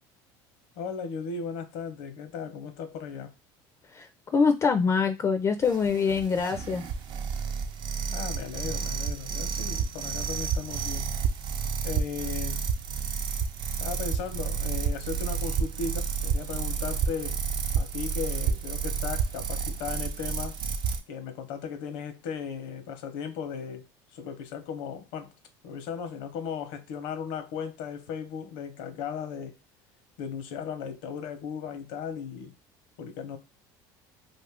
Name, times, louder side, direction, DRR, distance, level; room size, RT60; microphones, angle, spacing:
voice 1, 0.8-3.3 8.1-11.2 11.8-12.7 13.8-17.4 17.8-20.6 21.1-23.9 24.1-25.3 25.6-29.6 30.2-32.5 33.0-33.4, left 6 dB, 80° left, 0.8 m, -36 dB
voice 2, 4.3-6.8, left 5 dB, 30° left, 0.4 m, -24 dB
sound 1, 5.6-21.0, right 6 dB, 50° right, 0.5 m, -30 dB
2.6 x 2.5 x 3.5 m
supercardioid pair, 115°, 10 cm